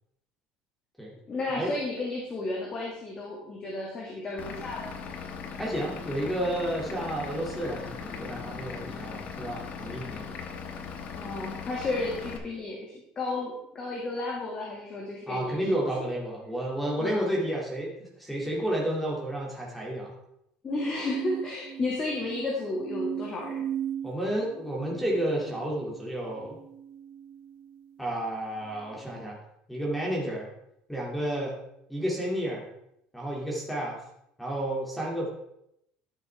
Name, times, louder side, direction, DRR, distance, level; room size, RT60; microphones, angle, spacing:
voice 1, 1.3-4.9 11.1-16.1 17.0-17.3 20.6-23.6, left 2 dB, 30° left, -3 dB, 2.0 m, -33 dB
Vehicle / Engine, 4.4-12.4, left 6 dB, 50° left, 1.1 m, -39 dB
voice 2, 5.6-10.3 15.3-20.1 24.0-26.6 28.0-29.4 29.7-30.5 30.9-31.6 31.9-32.7 33.1-34.0 34.4-35.3, right 1 dB, 5° left, -3 dB, 2.2 m, -31 dB
sound 1, 20.7-28.1 28.7-29.2, right 10 dB, 65° right, 0.8 m, -39 dB
12.0 x 6.5 x 3.3 m, 0.78 s
supercardioid pair, 120°, 3 cm